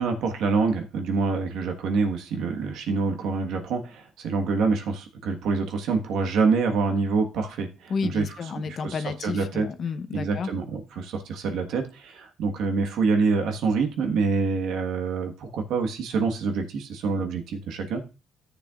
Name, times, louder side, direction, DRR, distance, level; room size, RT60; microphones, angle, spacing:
voice 1, 0.0-8.3 8.7-9.7 10.1-18.0, right 4 dB, 85° right, 4 dB, 1.4 m, -26 dB
voice 2, 7.9-10.5, left 5 dB, 55° left, 10 dB, 0.8 m, -31 dB
13.5 x 6.8 x 2.4 m, 0.31 s
cardioid pair, 90°, 0 cm